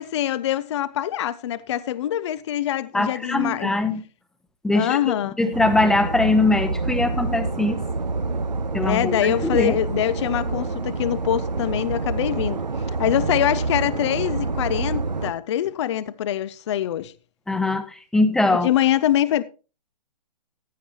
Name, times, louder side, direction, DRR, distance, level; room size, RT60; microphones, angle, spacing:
voice 1, 0.0-3.7 4.7-5.3 8.8-12.6 13.0-17.1 18.6-19.4, left 11 dB, 45° left, 0.5 m, -24 dB
voice 2, 2.9-4.0 4.6-7.8 8.7-9.8 17.5-18.7, left 2 dB, 5° left, 0.8 m, -22 dB
sound 1, 5.5-15.3, right 3 dB, 90° right, 0.8 m, -27 dB
15.0 x 9.8 x 3.0 m
figure-of-eight pair, 130°, 21 cm